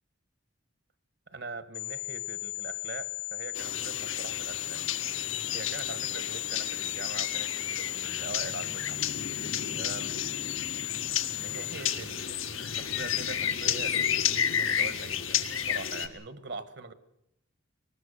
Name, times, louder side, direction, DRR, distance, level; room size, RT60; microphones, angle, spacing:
voice 1, 1.3-4.9 5.5-9.0 9.7-10.2 11.4-14.0 14.6-16.9, right 3 dB, 55° right, 12 dB, 1.3 m, -42 dB
sound 1, 1.7-11.7, left 36 dB, 50° left, 0.9 m, -36 dB
sound 2, 3.6-16.1, left 8 dB, 80° left, 1.8 m, -32 dB
24.0 x 19.5 x 6.9 m, 0.81 s
head